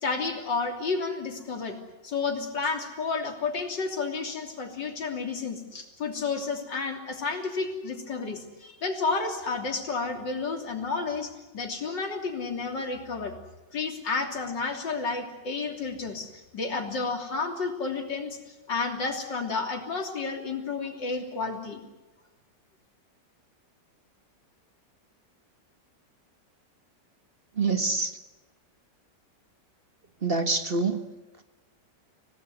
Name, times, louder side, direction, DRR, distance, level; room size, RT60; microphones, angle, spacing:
voice 1, 0.0-1.8 2.0-13.4 13.7-16.3 16.5-18.4 18.7-21.8, left 4 dB, 90° left, 3 dB, 3.8 m, -31 dB
voice 2, 27.5-28.2 30.2-31.0 31.4-31.5, right 3 dB, 35° right, 7 dB, 1.6 m, -26 dB
26.5 x 18.0 x 9.5 m, 1.1 s
omnidirectional pair, 1.9 m